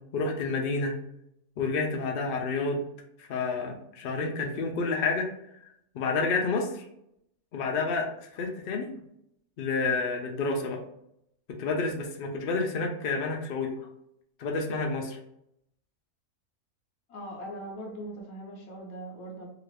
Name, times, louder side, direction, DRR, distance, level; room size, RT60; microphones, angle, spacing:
voice 1, 0.1-0.9 1.6-2.8 3.2-5.3 5.9-6.9 7.5-8.9 9.6-10.8 11.6-13.7 14.4-15.2, left 3 dB, 90° left, 2 dB, 0.4 m, -29 dB
voice 2, 17.1-19.5, right 1 dB, 50° left, -1 dB, 1.0 m, -40 dB
2.8 x 2.5 x 3.2 m, 0.76 s
omnidirectional pair, 1.6 m